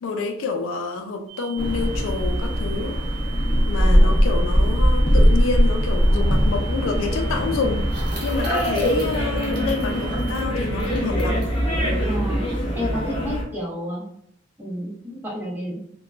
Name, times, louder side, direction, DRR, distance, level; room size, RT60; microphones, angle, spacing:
voice 1, 0.0-3.0 3.7-7.9 8.2-11.5, left 4 dB, 75° left, 0.3 m, -28 dB
sound 1, 1.3-10.5, right 11 dB, 90° right, 0.9 m, -41 dB
sound 2, 1.6-13.4, equal, 25° left, 0.6 m, -21 dB
voice 2, 3.8-4.2 12.0-12.4 12.8-14.0 14.6-15.8, equal, 10° right, 0.7 m, -30 dB
sound 3, 6.0-6.1 6.3-6.5 7.9-11.5 12.1-12.2 12.5-12.8, equal, 45° right, 0.8 m, -37 dB
3.0 x 2.2 x 2.4 m
head